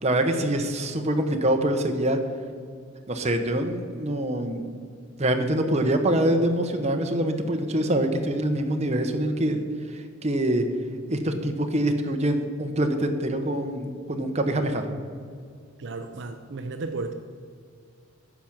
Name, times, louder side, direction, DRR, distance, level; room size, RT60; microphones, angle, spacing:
voice 1, 0.0-2.2 3.1-4.7 5.2-9.6 10.2-10.7 11.1-14.9, right 1 dB, 35° right, 5 dB, 1.0 m, -25 dB
voice 2, 15.8-17.1, right 3 dB, 60° right, 7 dB, 0.6 m, -33 dB
9.8 x 6.1 x 7.2 m, 2.2 s
head